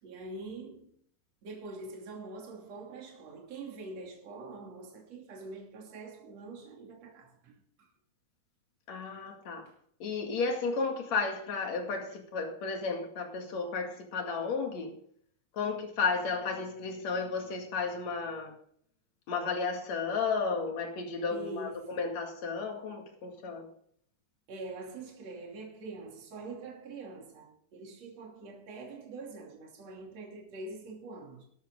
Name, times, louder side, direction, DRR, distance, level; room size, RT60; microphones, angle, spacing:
voice 1, 0.0-1.0 1.4-7.9 9.7-9.8 21.3-22.1 24.5-31.4, right 2 dB, 50° right, 3.8 m, -44 dB
voice 2, 8.9-9.7 10.0-15.0 15.5-18.5 19.3-23.7, left 4 dB, 55° left, 3.3 m, -33 dB
13.5 x 12.0 x 3.7 m
omnidirectional pair, 3.9 m